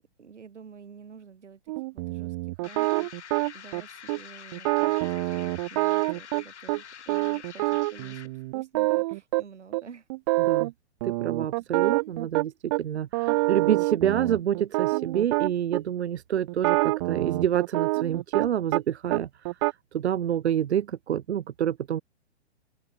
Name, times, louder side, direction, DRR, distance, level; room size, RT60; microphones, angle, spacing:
voice 1, 0.2-5.0 5.3-10.1, right 6 dB, 90° right, 7.3 m, -49 dB
sound 1, 1.7-3.8 4.1-4.2 4.5-6.8 7.1-9.4 9.7-9.8 10.1-10.7 11.0-12.8 13.1-15.8 16.5-18.8 19.1-19.7, right 22 dB, 25° right, 0.5 m, -26 dB
sound 2, 2.6-8.4, left 8 dB, 75° left, 5.6 m, -46 dB
voice 2, 10.4-10.7 11.0-19.3 19.9-22.0, right 10 dB, 70° right, 1.4 m, -27 dB
open air
hypercardioid pair, 140°, 34 cm